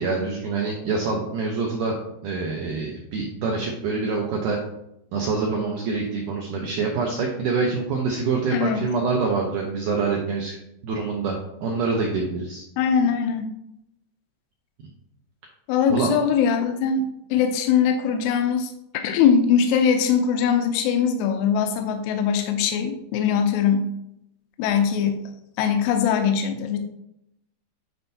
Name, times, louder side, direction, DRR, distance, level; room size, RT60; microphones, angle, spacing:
voice 1, 0.0-2.0 2.2-4.6 5.1-10.6 10.8-12.6 15.9-16.1, right 4 dB, 90° right, -1 dB, 1.8 m, -25 dB
voice 2, 8.5-8.9 12.8-13.5 15.7-23.9 24.6-25.3 25.6-26.8, left 7 dB, 85° left, 5 dB, 2.6 m, -21 dB
9.6 x 4.4 x 2.7 m, 0.80 s
omnidirectional pair, 4.8 m